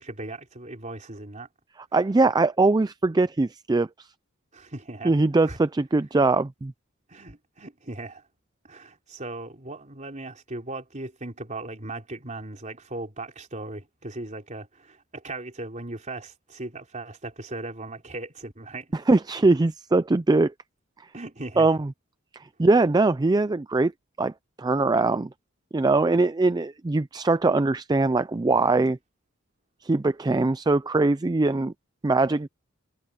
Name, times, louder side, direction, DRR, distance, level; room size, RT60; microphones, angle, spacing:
voice 1, 0.0-1.5 4.5-5.1 5.5-5.6 7.1-8.2 8.6-18.9 21.1-21.7, right 2 dB, 35° right, 3.9 m, -38 dB
voice 2, 1.9-4.1 5.0-6.7 18.9-20.5 21.6-21.9 22.6-23.9 24.2-24.3 24.6-25.3 25.7-29.0 29.8-31.7 32.0-32.5, right 3 dB, 20° right, 0.4 m, -21 dB
head